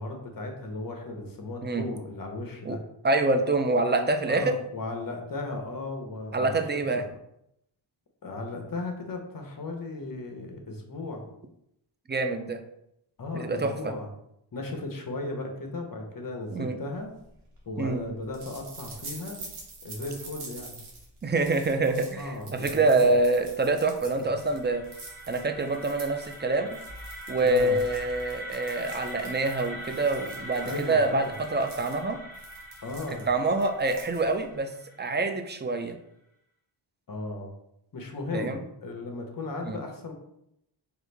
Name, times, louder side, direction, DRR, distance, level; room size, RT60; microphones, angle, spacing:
voice 1, 0.0-2.8 4.3-6.5 6.9-7.1 8.2-11.2 13.2-14.1 14.5-17.1 17.7-19.4 19.8-20.8 21.8-23.2 24.0-24.3 27.4-27.8 30.6-31.4 32.8-33.3 37.1-37.5 37.9-40.1, left 2 dB, 45° left, 2 dB, 0.9 m, -36 dB
voice 2, 3.0-4.5 6.3-7.0 12.1-12.6 13.3-13.9 16.5-16.8 17.8-18.0 21.2-24.8 25.3-26.8 27.3-32.2 33.3-34.7 35.0-36.0 38.3-38.6 39.7-39.8, right 2 dB, 25° right, 7 dB, 0.4 m, -26 dB
sound 1, 17.1-34.6, right 2 dB, 90° right, 1.2 m, -46 dB
sound 2, 23.9-35.6, equal, 5° left, 1.5 m, -43 dB
4.7 x 2.6 x 3.3 m, 0.78 s
cardioid pair, 75°, 49 cm